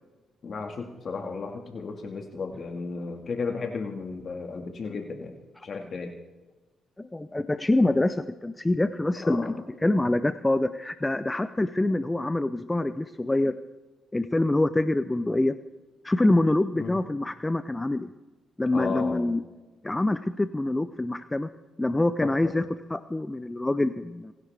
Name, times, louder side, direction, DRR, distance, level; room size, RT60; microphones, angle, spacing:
voice 1, 0.4-5.3 5.6-6.1 9.2-9.5 16.8-17.0 18.7-19.2, left 4 dB, 50° left, 4 dB, 1.8 m, -34 dB
voice 2, 7.0-13.6 14.1-15.6 16.0-18.1 18.6-19.4 19.8-21.5 21.8-24.3, left 2 dB, 15° left, 12 dB, 0.6 m, -25 dB
27.5 x 11.0 x 3.4 m, 1.1 s
cardioid pair, 90°, 0 cm